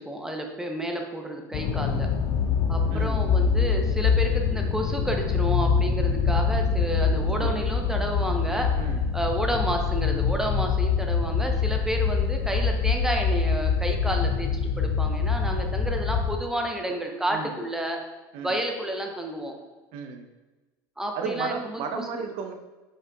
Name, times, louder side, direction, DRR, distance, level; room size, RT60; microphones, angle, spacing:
voice 1, 0.0-2.1 2.7-8.7 9.1-14.5 14.8-18.0 18.4-19.6 21.0-22.2, right 1 dB, 5° right, 2 dB, 0.6 m, -30 dB
sound 1, 1.5-16.4, left 5 dB, 60° left, 0.4 m, -25 dB
voice 2, 2.9-3.3 7.1-7.5 8.8-9.1 17.3-17.5 18.3-18.5 19.9-20.3 21.1-22.6, right 5 dB, 65° right, 6 dB, 0.6 m, -34 dB
5.3 x 3.7 x 2.3 m, 1.2 s
supercardioid pair, 100°, 10 cm